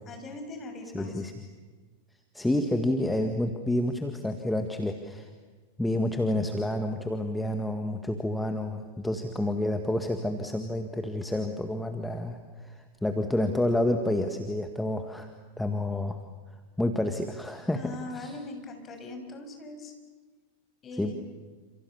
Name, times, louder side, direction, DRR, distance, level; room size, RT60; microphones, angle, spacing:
voice 1, 0.1-1.2 17.7-19.9 20.8-21.1, left 2 dB, 25° left, 5 dB, 6.5 m, -41 dB
voice 2, 0.9-1.3 2.3-5.3 5.8-15.3 15.6-16.2 16.8-18.4 21.0-21.1, left 1 dB, 5° left, 5 dB, 1.9 m, -29 dB
29.5 x 28.0 x 7.1 m, 1.4 s
figure-of-eight pair, 90°, 0 cm